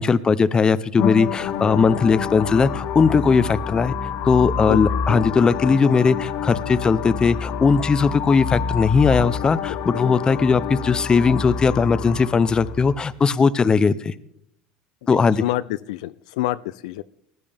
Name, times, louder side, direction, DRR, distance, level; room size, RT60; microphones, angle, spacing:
voice 1, 0.0-3.9 4.2-14.1 15.1-15.4, left 5 dB, 25° left, 16 dB, 0.6 m, -18 dB
sound 1, 1.0-12.9, left 7 dB, 65° left, 1.1 m, -28 dB
voice 2, 15.0-17.0, left 16 dB, 90° left, 15 dB, 0.4 m, -27 dB
19.5 x 11.0 x 3.5 m, 0.74 s
supercardioid pair, 115°, 4 cm